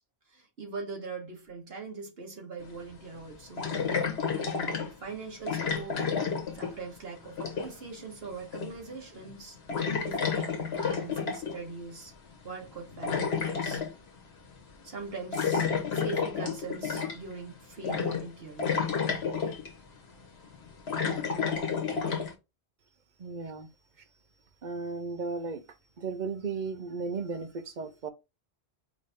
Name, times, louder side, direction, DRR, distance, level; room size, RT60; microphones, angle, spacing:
voice 1, 0.3-3.7 4.3-6.0 6.5-9.6 10.0-12.1 12.4-13.8 14.8-18.9, right 4 dB, 75° right, 1.6 m, -42 dB
sound 1, 2.6-2.7 3.6-4.9 5.5-7.0 7.2-7.9 8.5-8.9 9.2-9.4 9.7-11.6 12.6-13.9 15.3-17.3 17.8-18.3 18.6-19.7 20.4-22.3, left 6 dB, 80° left, 1.3 m, -30 dB
voice 2, 23.2-23.7 24.6-25.6 26.0-28.1, right 4 dB, 55° right, 0.7 m, -35 dB
5.0 x 2.7 x 3.4 m
omnidirectional pair, 1.0 m